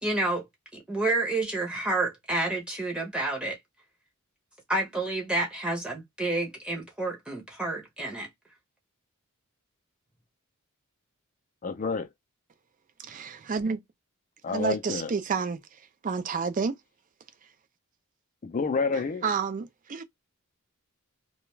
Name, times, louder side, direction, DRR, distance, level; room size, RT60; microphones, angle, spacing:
voice 1, 0.0-0.5 0.7-3.6 4.7-8.3, right 2 dB, 5° right, 0.7 m, -29 dB
voice 2, 11.6-12.1 14.4-15.1 18.4-19.3, left 4 dB, 35° left, 0.4 m, -29 dB
voice 3, 13.0-13.8 14.5-15.6 16.0-16.8 19.2-20.0, right 5 dB, 35° right, 0.4 m, -29 dB
2.3 x 2.2 x 3.0 m
head